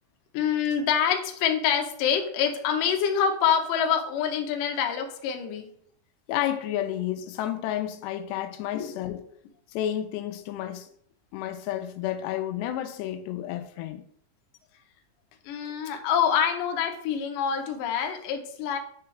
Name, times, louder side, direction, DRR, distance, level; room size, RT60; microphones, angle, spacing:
voice 1, 0.3-5.7 8.7-8.9 15.4-18.8, left 8 dB, 75° left, 2.1 m, -26 dB
voice 2, 6.3-9.2 9.7-10.9 11.3-14.0, left 11 dB, 90° left, 2.8 m, -31 dB
7.7 x 5.8 x 3.3 m
omnidirectional pair, 4.8 m